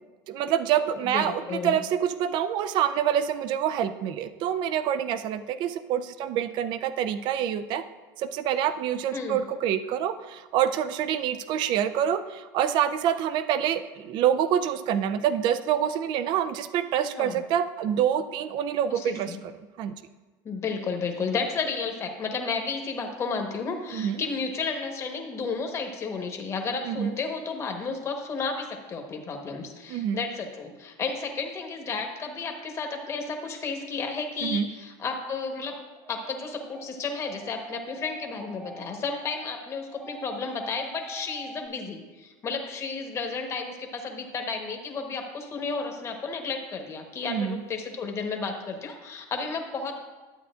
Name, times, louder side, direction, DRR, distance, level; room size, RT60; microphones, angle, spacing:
voice 1, 0.3-7.8 8.2-19.3 19.8-20.0 23.9-24.2 26.9-27.1 29.9-30.2 34.4-34.7 47.3-47.6, right 9 dB, 45° right, 12 dB, 0.4 m, -26 dB
voice 2, 1.0-1.8 9.1-9.4 17.2-17.4 18.9-19.4 20.4-35.8 36.1-50.0, left 4 dB, 25° left, 3 dB, 1.1 m, -32 dB
sound 1, 35.6-41.7, right 1 dB, 10° right, 0.9 m, -45 dB
12.0 x 8.2 x 2.5 m, 1.3 s
supercardioid pair, 140°, 11 cm